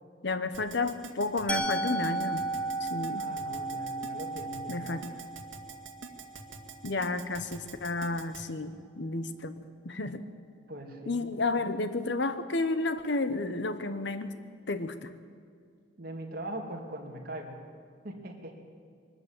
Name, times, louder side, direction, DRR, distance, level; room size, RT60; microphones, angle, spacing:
voice 1, 0.2-2.4 2.8-3.2 4.7-5.0 6.8-9.5 9.8-10.3 11.1-14.4 14.7-15.1, left 3 dB, 60° left, 11 dB, 1.0 m, -31 dB
Keyboard (musical), 0.5-8.4, right 5 dB, 75° right, 2.1 m, -45 dB
Musical instrument, 1.5-7.4, right 2 dB, 5° left, 1.0 m, -35 dB
voice 2, 3.1-5.0 10.5-11.2 11.5-11.6 16.0-17.6 18.0-18.6, right 1 dB, 50° right, 1 dB, 2.7 m, -41 dB
22.5 x 13.0 x 8.9 m, 2.2 s
head